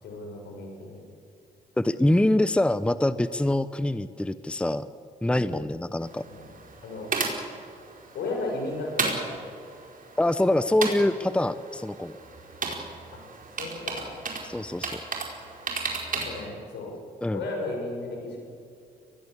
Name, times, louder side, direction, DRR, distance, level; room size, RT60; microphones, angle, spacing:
voice 1, 0.0-1.0 5.3-5.6 6.2-6.5 6.8-7.1 8.1-9.2 13.1-13.2 13.5-14.1 16.1-16.9 17.3-18.4, left 2 dB, 80° left, 1 dB, 6.5 m, -34 dB
voice 2, 1.8-4.9 5.2-6.2 10.2-12.1 14.5-15.0 17.2-17.4, left 1 dB, 5° left, 14 dB, 0.8 m, -24 dB
sound 1, 6.0-16.5, right 4 dB, 50° right, 4.8 m, -35 dB
23.0 x 19.0 x 8.3 m, 2.3 s
supercardioid pair, 60°, 18 cm